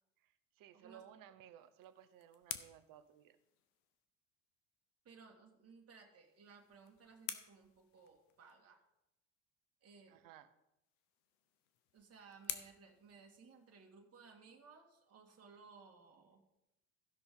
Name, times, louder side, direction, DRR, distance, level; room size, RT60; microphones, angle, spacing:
voice 1, 0.2-3.4 10.1-10.5, right 10 dB, 55° right, 12 dB, 1.0 m, -59 dB
voice 2, 0.7-1.0 5.0-8.8 9.8-10.2 11.9-16.6, right 5 dB, 35° right, 1 dB, 2.2 m, -60 dB
sound 1, 1.6-4.1 6.2-8.6 10.8-14.0, left 11 dB, 70° left, 1.0 m, -51 dB
16.0 x 6.0 x 3.8 m, 0.89 s
hypercardioid pair, 80°, 40 cm